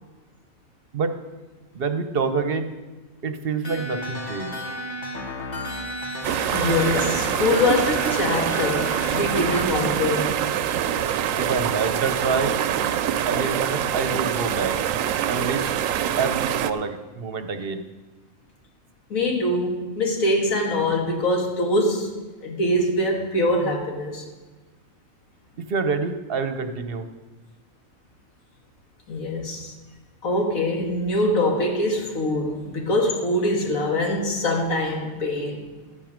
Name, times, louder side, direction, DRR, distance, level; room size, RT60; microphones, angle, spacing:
voice 1, 1.7-2.7 3.2-4.6 11.4-12.5 13.3-14.7 15.3-15.6 16.2-17.8 25.6-27.1, right 5 dB, 50° right, 8 dB, 1.0 m, -27 dB
sound 1, 3.6-9.6, left 1 dB, 55° left, 1.7 m, -33 dB
sound 2, 6.2-16.7, right 9 dB, 75° right, 1.0 m, -25 dB
voice 2, 6.5-10.4 19.1-22.1 22.4-24.2 29.1-29.7 30.2-35.7, left 1 dB, 85° left, 2 dB, 2.1 m, -23 dB
12.5 x 9.1 x 5.1 m, 1.3 s
omnidirectional pair, 1.4 m